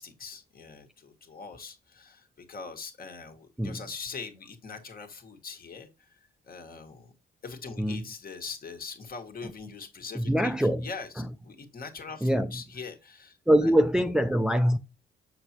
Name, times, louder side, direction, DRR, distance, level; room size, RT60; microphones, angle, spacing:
voice 1, 0.0-6.2 6.5-7.1 7.4-11.1 11.4-13.4 13.6-13.7, left 5 dB, 45° left, 1.6 m, -42 dB
voice 2, 10.1-10.9 11.2-11.3 12.2-12.6 13.5-14.8, equal, 5° right, 0.5 m, -24 dB
6.6 x 6.0 x 2.9 m
cardioid pair, 90°, 20 cm